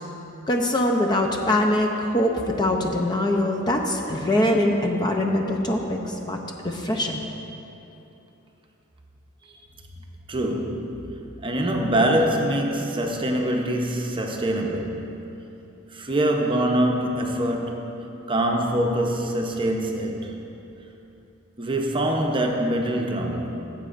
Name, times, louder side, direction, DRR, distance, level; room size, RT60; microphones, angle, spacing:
voice 1, 0.5-6.4 6.6-7.2, left 1 dB, 20° left, 2 dB, 0.5 m, -23 dB
voice 2, 10.3-11.1 11.4-15.2 15.9-17.9 18.3-20.3 21.6-23.7, right 1 dB, 25° right, 1 dB, 0.7 m, -24 dB
15.5 x 7.7 x 2.5 m, 3.0 s
head